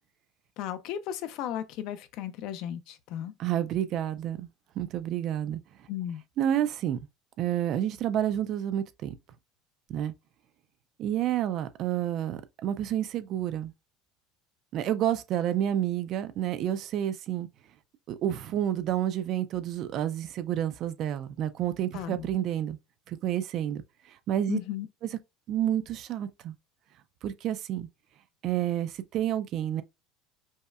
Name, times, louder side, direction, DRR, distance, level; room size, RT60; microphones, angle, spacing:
voice 1, 0.6-3.3 5.9-6.2 21.9-22.3 24.5-24.9, left 11 dB, 55° left, 0.5 m, -35 dB
voice 2, 3.4-4.5 4.8-5.6 6.4-7.0 7.4-9.1 9.9-10.1 11.0-13.7 14.7-17.5 18.1-22.8 23.1-23.8 24.1-24.6 25.5-26.5 27.2-27.9 28.4-29.8, right 11 dB, 40° right, 0.4 m, -29 dB
5.3 x 2.1 x 2.3 m
cardioid pair, 165°, 0 cm